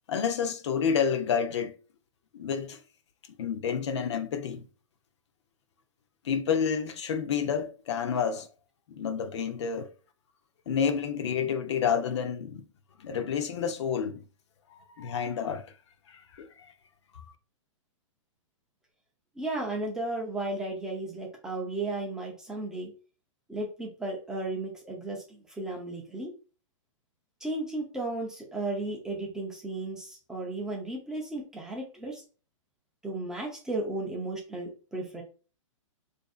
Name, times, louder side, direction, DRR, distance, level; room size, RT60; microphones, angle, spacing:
voice 1, 0.1-1.7 2.3-2.8 3.4-4.7 6.2-8.5 8.9-9.9 10.7-12.6 13.0-14.2 14.7-15.6 16.1-16.7, left 7 dB, 60° left, 0.6 m, -29 dB
voice 2, 19.4-22.9 23.5-26.3 27.4-32.2 33.0-35.2, right 2 dB, 5° right, 0.5 m, -34 dB
4.7 x 2.6 x 2.3 m
hypercardioid pair, 160°, 17 cm